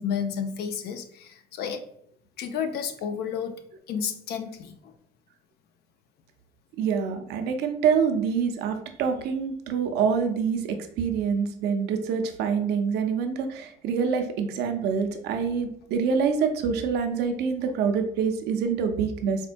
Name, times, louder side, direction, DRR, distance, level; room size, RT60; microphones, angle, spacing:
voice 1, 0.0-1.8 2.4-3.6 3.9-4.9, left 7 dB, 75° left, 8 dB, 0.5 m, -31 dB
voice 2, 6.8-19.5, right 6 dB, 80° right, 6 dB, 0.5 m, -26 dB
4.3 x 2.1 x 2.5 m, 0.68 s
cardioid pair, 110°, 17 cm